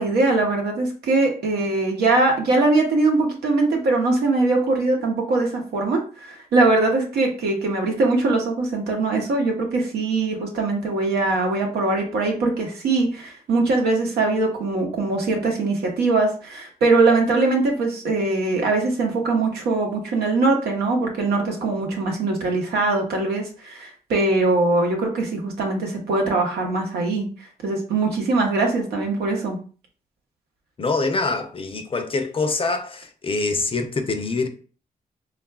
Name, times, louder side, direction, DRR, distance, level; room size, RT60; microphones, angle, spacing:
voice 1, 0.0-27.3 27.6-29.6, right 3 dB, 85° right, 0.7 m, -21 dB
voice 2, 30.8-34.5, left 3 dB, 35° left, 0.5 m, -25 dB
3.4 x 2.4 x 2.3 m
supercardioid pair, 50°, 16 cm